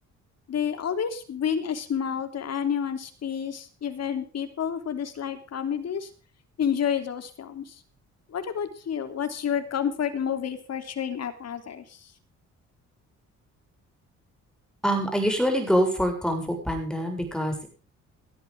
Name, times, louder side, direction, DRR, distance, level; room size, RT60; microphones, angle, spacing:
voice 1, 0.5-6.1 6.6-7.8 8.3-12.1, left 8 dB, 55° left, 8 dB, 3.3 m, -29 dB
voice 2, 14.8-17.7, equal, ahead, 4 dB, 7.7 m, -25 dB
18.5 x 13.0 x 3.7 m, 0.37 s
cardioid pair, 90°, 30 cm